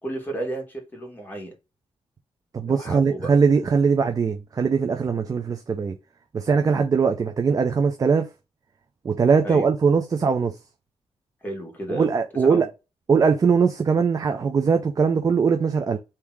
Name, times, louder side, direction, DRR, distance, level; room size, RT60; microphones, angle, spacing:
voice 1, 0.0-1.6 2.6-3.3 9.4-9.7 11.4-12.1 12.4-12.7, right 1 dB, 15° left, 1.9 m, -33 dB
voice 2, 2.5-5.9 6.3-8.3 9.0-10.5 11.9-12.6 13.1-16.0, right 5 dB, 35° right, 0.5 m, -21 dB
3.6 x 2.9 x 4.6 m
wide cardioid pair, 160°, 11 cm